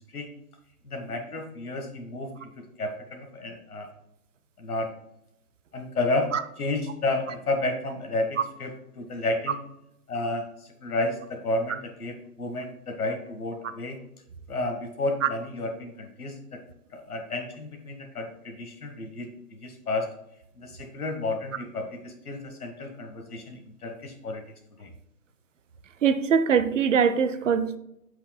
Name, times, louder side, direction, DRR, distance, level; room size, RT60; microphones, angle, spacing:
voice 1, 0.9-3.9 4.6-4.9 5.7-6.3 6.6-9.6 10.1-10.4 10.8-14.0 14.5-16.6 16.9-19.3 19.6-20.1 20.6-24.4 24.8-24.9, left 2 dB, 65° left, 1.5 m, -31 dB
voice 2, 26.0-27.8, right 7 dB, 55° right, 0.6 m, -22 dB
7.9 x 5.9 x 2.2 m
figure-of-eight pair, 135°, 47 cm